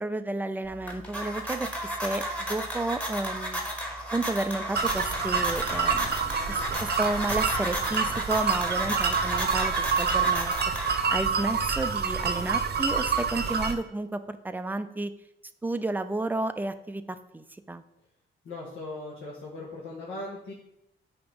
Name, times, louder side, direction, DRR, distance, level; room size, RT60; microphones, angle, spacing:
voice 1, 0.0-3.6 4.1-6.1 6.5-10.5 11.1-15.1 15.6-17.8, right 2 dB, 10° right, 10 dB, 0.4 m, -32 dB
sound 1, 0.6-11.3, right 1 dB, 5° left, 1.3 m, -33 dB
sound 2, 4.7-13.7, right 6 dB, 55° right, 0.8 m, -27 dB
voice 2, 18.4-20.5, left 2 dB, 75° left, -5 dB, 1.5 m, -39 dB
8.7 x 3.0 x 5.3 m, 0.81 s
cardioid pair, 90°, 21 cm